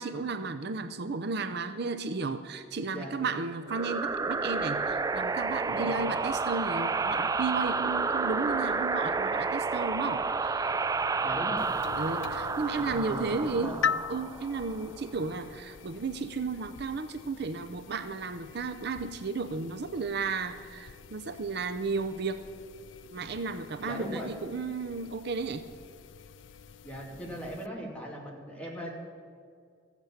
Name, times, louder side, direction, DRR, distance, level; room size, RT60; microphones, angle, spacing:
voice 1, 0.0-10.7 12.0-13.8 14.1-22.4 23.1-25.6, right 4 dB, 60° right, 10 dB, 0.6 m, -33 dB
sound 1, 3.7-15.0, right 4 dB, 20° right, 0.3 m, -30 dB
voice 2, 11.2-11.7 12.7-13.8 23.8-24.3 26.8-28.9, equal, 5° left, -2 dB, 2.6 m, -39 dB
sound 2, 11.6-27.7, left 7 dB, 80° left, 0.5 m, -42 dB
14.5 x 8.2 x 8.6 m, 2.1 s
head